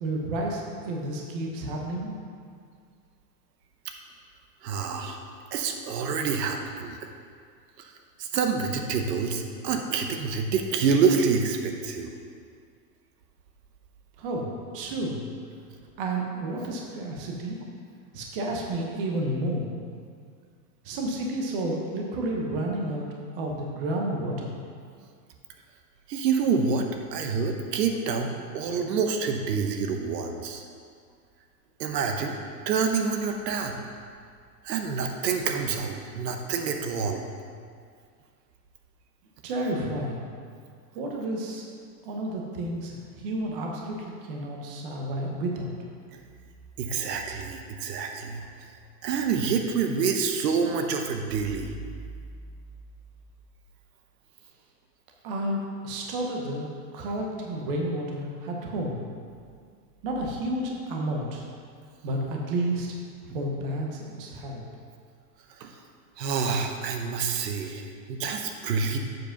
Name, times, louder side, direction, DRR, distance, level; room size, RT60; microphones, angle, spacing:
voice 1, 0.0-2.1 14.2-15.2 16.0-17.6 18.1-19.7 20.8-23.1 23.3-24.5 39.4-40.3 40.9-41.6 42.0-45.7 55.2-55.6 55.8-56.7 56.9-59.0 60.0-61.4 62.0-62.9 63.2-64.6, right 1 dB, 35° right, 0 dB, 0.9 m, -31 dB
voice 2, 4.6-5.2 5.5-7.0 7.8-7.9 8.2-12.1 26.1-26.9 27.1-30.6 31.8-32.4 32.7-33.7 34.6-37.3 46.8-48.5 49.0-51.7 65.6-65.8 66.2-69.0, right 5 dB, 75° right, 4 dB, 1.0 m, -27 dB
7.8 x 4.8 x 5.7 m, 2.1 s
supercardioid pair, 180°, 49 cm